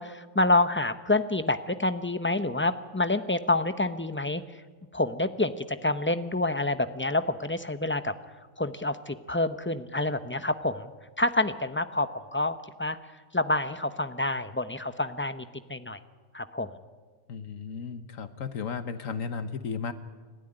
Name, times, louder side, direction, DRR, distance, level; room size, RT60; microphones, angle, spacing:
voice 1, 0.0-4.4 4.9-5.5 5.8-8.1 8.6-10.9 11.2-13.0 13.3-15.4 15.7-16.0 16.3-16.7, left 2 dB, 10° left, 10 dB, 0.6 m, -27 dB
voice 2, 17.3-19.9, left 5 dB, 70° left, 11 dB, 1.4 m, -34 dB
29.5 x 13.0 x 9.8 m, 1.4 s
omnidirectional pair, 1.4 m